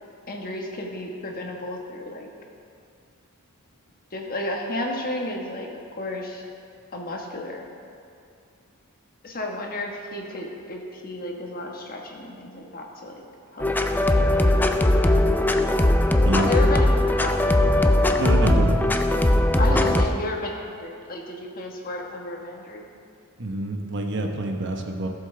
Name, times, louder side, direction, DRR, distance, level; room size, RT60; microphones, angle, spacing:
voice 1, 0.3-2.3 4.1-6.4 6.9-7.7 9.2-13.1 13.5-14.2 14.5-14.6 16.3-16.9 17.2-17.7 19.6-22.8, left 2 dB, 40° left, 0 dB, 1.3 m, -32 dB
sound 1, 13.6-20.1, left 1 dB, 10° left, 0.3 m, -19 dB
voice 2, 18.2-18.8 19.6-20.0 23.4-25.1, right 1 dB, 55° right, 3 dB, 1.0 m, -27 dB
17.0 x 7.4 x 3.3 m, 2.5 s
head